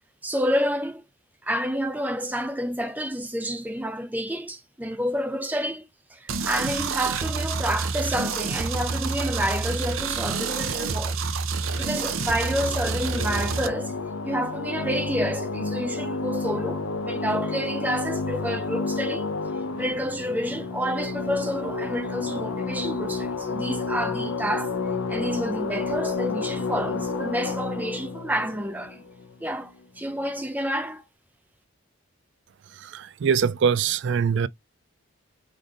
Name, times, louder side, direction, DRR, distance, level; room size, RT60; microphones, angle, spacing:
voice 1, 0.2-1.0 1.4-11.2 11.8-14.0 14.2-19.3 19.8-24.8 25.1-29.0 29.4-31.0, equal, 10° right, 0.6 m, -29 dB
sound 1, 6.3-13.7, right 4 dB, 70° right, 0.7 m, -28 dB
sound 2, 11.6-29.7, left 3 dB, 85° left, 0.7 m, -31 dB
voice 2, 32.8-34.5, right 6 dB, 55° right, 0.3 m, -23 dB
3.9 x 3.4 x 3.7 m
head